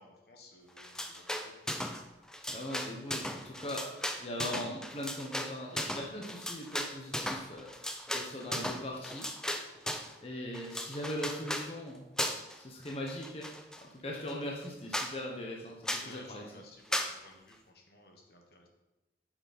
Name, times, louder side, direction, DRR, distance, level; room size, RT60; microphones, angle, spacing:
voice 1, 0.0-2.0 16.0-18.7, left 2 dB, 55° left, 2 dB, 1.2 m, -56 dB
sound 1, 0.8-2.0 2.3-10.1 10.5-11.7 12.2-12.6 12.9-13.8 14.3-14.4 14.6-14.7 14.9-15.1 15.9-16.1 16.9-17.1, left 1 dB, 5° left, 0.4 m, -36 dB
voice 2, 2.5-3.9 4.2-7.7 8.1-9.3 10.2-12.1 12.6-13.5 13.8-16.4, left 1 dB, 30° left, -1 dB, 1.1 m, -40 dB
8.9 x 6.1 x 4.3 m, 1.0 s
head